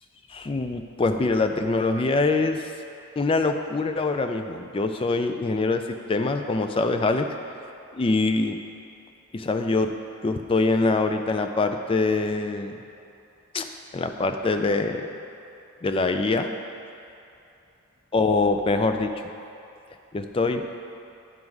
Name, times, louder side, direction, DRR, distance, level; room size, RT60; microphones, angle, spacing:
voice 1, 0.3-2.7 3.2-5.8 6.1-7.3 7.9-8.6 9.3-10.0 10.2-12.8 13.5-13.7 13.9-15.1 15.8-16.5 18.1-19.1 20.1-20.6, left 3 dB, 25° left, 6 dB, 0.3 m, -24 dB
10.5 x 3.9 x 4.7 m, 2.7 s
head